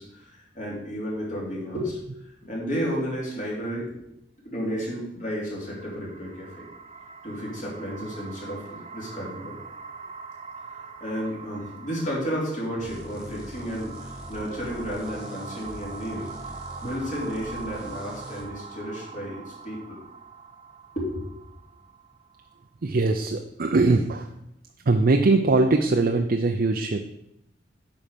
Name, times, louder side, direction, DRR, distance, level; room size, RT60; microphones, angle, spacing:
voice 1, 0.0-2.0 2.4-4.0 4.4-6.7 7.2-9.6 10.7-16.3 16.8-20.0 20.9-21.2, equal, 45° left, -4 dB, 3.3 m, -32 dB
sound 1, 5.5-22.6, right 4 dB, 35° right, 0.9 m, -43 dB
sound 2, 12.8-18.5, equal, 5° right, 1.7 m, -42 dB
voice 2, 22.8-24.3 24.9-27.0, right 3 dB, 55° right, 5 dB, 0.5 m, -21 dB
9.1 x 5.8 x 5.2 m, 0.79 s
head